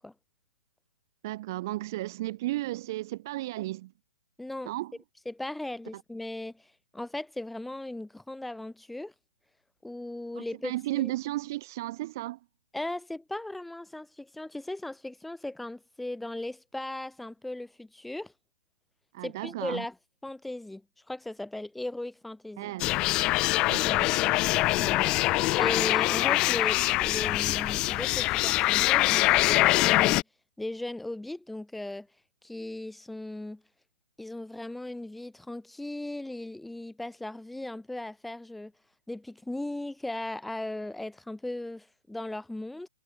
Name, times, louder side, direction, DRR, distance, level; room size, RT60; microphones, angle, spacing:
voice 1, 1.2-3.9 4.6-4.9 5.9-6.0 10.3-12.4 19.1-19.8 22.6-22.9 23.1-23.2 23.6-24.2, right 17 dB, 40° right, 5.7 m, -34 dB
voice 2, 4.4-4.7 5.3-9.1 9.8-11.1 12.7-18.3 19.2-19.9 20.2-22.7 23.8-24.1 24.8-25.2 25.5-30.2 30.6-32.1 32.4-33.6 34.2-38.7 39.1-42.9, left 1 dB, 5° left, 7.9 m, -37 dB
sound 1, 22.8-30.2, left 20 dB, 25° left, 1.9 m, -24 dB
figure-of-eight pair, 125°, 3 cm